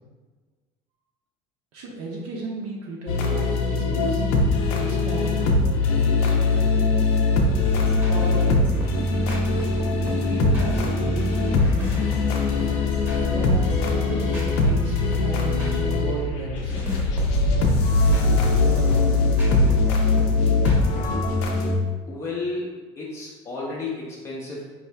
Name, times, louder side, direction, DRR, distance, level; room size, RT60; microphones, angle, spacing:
voice 1, 1.7-4.2 4.7-7.1 8.1-8.6 9.6-11.6 13.3-16.9 18.0-19.2, right 3 dB, 70° right, -2 dB, 0.7 m, -34 dB
sound 1, 3.1-21.8, left 3 dB, 85° left, 0.6 m, -21 dB
sound 2, 7.8-16.0 16.5-21.1, right 1 dB, 10° right, 0.8 m, -33 dB
voice 2, 22.1-22.7 23.0-24.6, left 3 dB, 20° left, -4 dB, 0.5 m, -32 dB
4.8 x 2.7 x 3.2 m, 1.3 s
cardioid pair, 180°, 13 cm